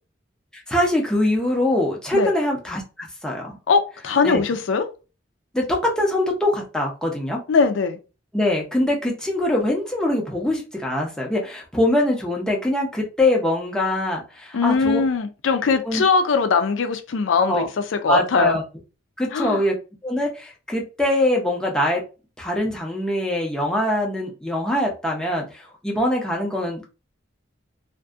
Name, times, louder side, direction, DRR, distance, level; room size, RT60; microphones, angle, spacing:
voice 1, 0.5-3.6 4.2-4.4 5.5-7.4 8.3-15.0 15.8-16.0 17.5-17.7 18.1-18.6 19.2-22.0 22.4-26.9, left 1 dB, 5° left, 0.6 m, -23 dB
voice 2, 3.7-4.8 7.5-8.0 14.5-17.6 18.0-18.6 19.3-19.6, left 5 dB, 85° left, 0.4 m, -20 dB
2.6 x 2.5 x 2.4 m
head